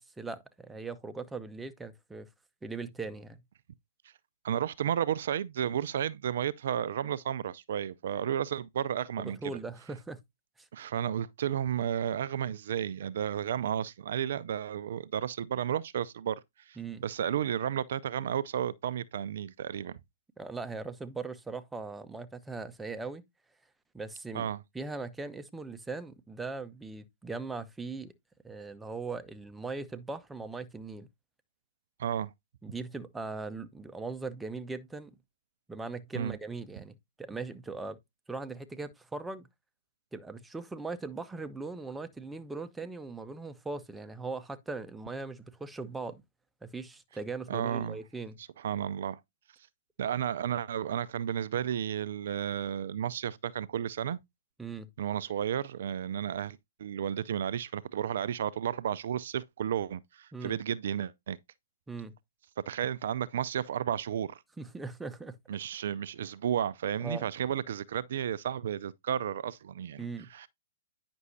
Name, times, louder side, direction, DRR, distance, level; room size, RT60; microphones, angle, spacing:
voice 1, 0.0-2.3 2.6-3.4 9.2-10.2 10.6-10.7 16.8-17.0 20.4-23.2 23.9-24.5 24.7-28.1 28.4-31.1 32.6-35.1 35.7-38.0 38.3-39.5 40.1-46.2 46.6-48.4 54.6-54.9 60.3-60.6 61.9-62.1 64.6-65.4 67.0-67.3 70.0-70.3, right 3 dB, 5° right, 0.7 m, -39 dB
voice 2, 4.4-9.4 10.7-16.4 16.7-20.0 24.3-24.6 32.0-32.3 36.1-36.4 47.5-48.0 48.4-49.2 50.0-54.2 55.0-61.4 62.7-64.4 65.5-70.0 70.3-70.5, right 9 dB, 60° right, 0.4 m, -32 dB
9.5 x 6.1 x 2.7 m
hypercardioid pair, 125°, 0 cm